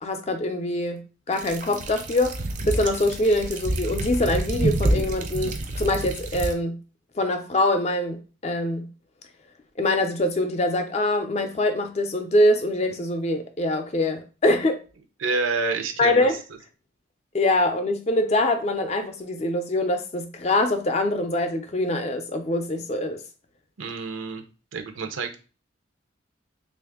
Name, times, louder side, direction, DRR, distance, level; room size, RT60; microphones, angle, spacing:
voice 1, 0.0-2.4 2.7-6.8 7.2-8.9 9.8-14.8 16.0-16.3 17.3-23.2, left 1 dB, 35° left, 0.4 m, -24 dB
sound 1, 1.3-6.5, right 1 dB, 40° right, 0.5 m, -28 dB
voice 2, 15.2-16.3 23.8-24.4 24.7-25.4, right 4 dB, 90° right, 0.7 m, -28 dB
3.2 x 2.5 x 3.5 m
head